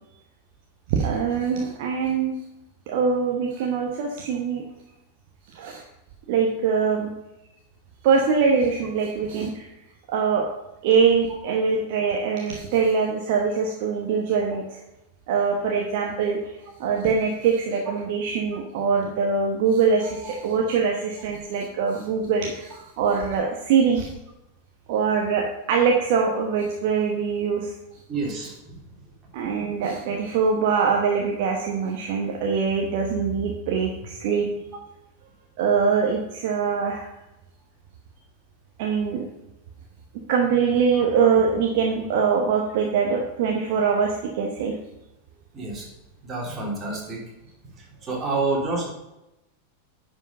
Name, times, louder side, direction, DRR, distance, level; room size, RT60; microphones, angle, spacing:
voice 1, 0.9-2.3 2.9-4.6 5.5-5.8 6.3-7.1 8.0-9.7 10.1-10.4 10.8-14.8 15.3-16.5 16.8-24.1 24.9-27.7 29.3-34.5 35.6-37.1 38.8-39.2 40.3-44.7, right 5 dB, 50° right, 1 dB, 1.1 m, -23 dB
voice 2, 28.1-28.8 45.5-45.9 46.2-47.2 48.0-48.9, right 3 dB, 25° right, -2 dB, 3.0 m, -28 dB
10.0 x 5.2 x 5.4 m, 0.93 s
figure-of-eight pair, 90°, 0 cm